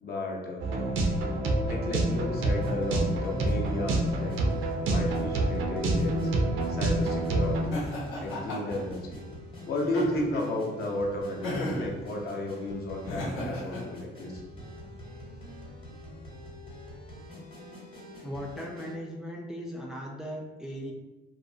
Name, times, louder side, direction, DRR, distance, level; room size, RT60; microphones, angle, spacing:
voice 1, 0.0-0.7 1.7-4.4 4.9-6.3 6.7-7.8 8.2-9.2 9.7-14.4, left 1 dB, 55° left, -1 dB, 0.6 m, -33 dB
sound 1, 0.6-7.7, right 2 dB, 80° right, 0.4 m, -27 dB
sound 2, 2.3-19.0, equal, 25° left, 0.8 m, -46 dB
Laughter, 7.7-8.8 9.8-10.5 11.4-11.9 13.0-13.8, left 1 dB, 90° left, 0.8 m, -32 dB
voice 2, 18.2-20.9, equal, 5° right, -1 dB, 0.3 m, -38 dB
2.5 x 2.0 x 2.6 m, 1.2 s
cardioid pair, 90°, 20 cm